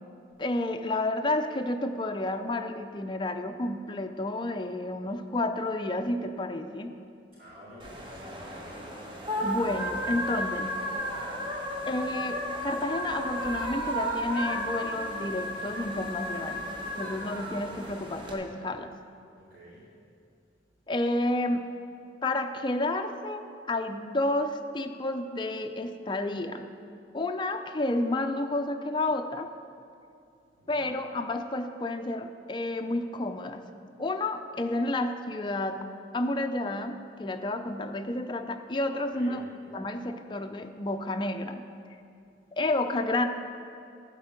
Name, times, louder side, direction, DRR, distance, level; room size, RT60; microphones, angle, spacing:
voice 1, 0.4-6.9 9.4-10.7 11.9-16.6 17.0-18.9 20.9-21.7 22.2-26.7 27.1-29.5 30.7-33.7 34.0-35.9 36.1-39.5 39.7-41.6 42.6-43.3, left 2 dB, 25° left, 6 dB, 0.4 m, -30 dB
voice 2, 7.3-8.9 10.4-11.0 19.3-19.8 30.6-31.0 39.1-39.4, equal, 50° right, -13 dB, 2.4 m, -51 dB
sound 1, 7.8-18.3, equal, 25° right, 1.0 m, -33 dB
11.0 x 4.4 x 7.4 m, 2.5 s
head